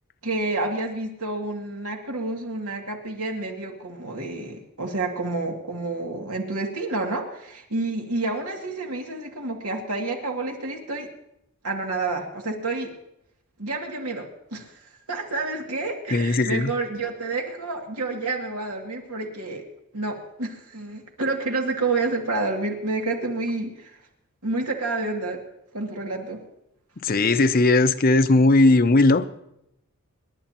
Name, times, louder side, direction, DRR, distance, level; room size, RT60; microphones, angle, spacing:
voice 1, 0.2-11.1 11.6-12.9 13.6-14.7 15.1-19.6 19.9-23.9 24.4-25.4 25.7-26.4, right 3 dB, 85° right, 2.4 m, -29 dB
voice 2, 16.1-16.7 27.0-29.3, left 2 dB, 40° left, 0.6 m, -18 dB
27.5 x 11.0 x 3.0 m
head